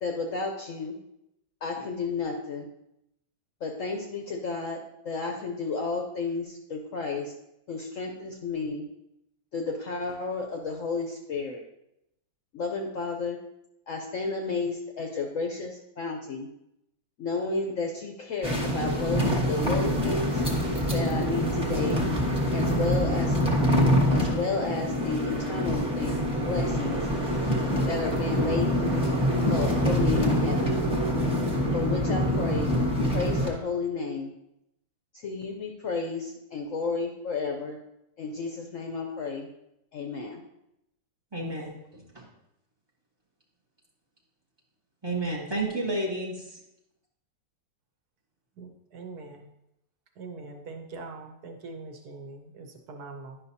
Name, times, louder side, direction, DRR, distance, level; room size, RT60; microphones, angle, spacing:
voice 1, 0.0-1.0 1.6-2.7 3.6-4.8 5.0-7.3 7.7-8.9 9.5-11.6 12.5-13.4 13.9-16.5 17.2-20.4 20.9-22.0 22.5-23.4 24.1-26.2 26.4-27.0 27.9-28.8 29.5-30.8 31.7-32.9 33.1-34.3 35.1-37.8 38.2-39.5 39.9-40.4, left 4 dB, 65° left, 2 dB, 0.8 m, -32 dB
sound 1, 18.4-33.5, equal, 5° right, 0.9 m, -25 dB
voice 2, 41.3-42.3 45.0-46.6, right 2 dB, 35° right, -4 dB, 0.4 m, -31 dB
voice 3, 48.6-49.3 50.2-53.4, right 3 dB, 65° right, 4 dB, 1.2 m, -42 dB
10.0 x 5.7 x 2.7 m, 0.84 s
omnidirectional pair, 2.0 m